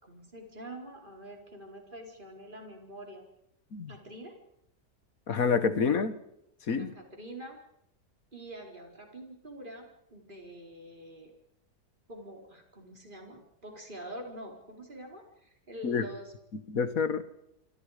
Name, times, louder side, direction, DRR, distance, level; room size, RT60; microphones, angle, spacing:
voice 1, 0.0-3.2 3.9-4.4 6.7-7.6 8.3-11.3 12.1-16.3, equal, 30° right, 2 dB, 4.7 m, -46 dB
voice 2, 5.3-6.2 6.7-6.9 15.8-16.1 16.7-17.2, left 5 dB, 60° left, 12 dB, 1.8 m, -27 dB
27.5 x 25.5 x 5.1 m, 0.79 s
omnidirectional pair, 1.7 m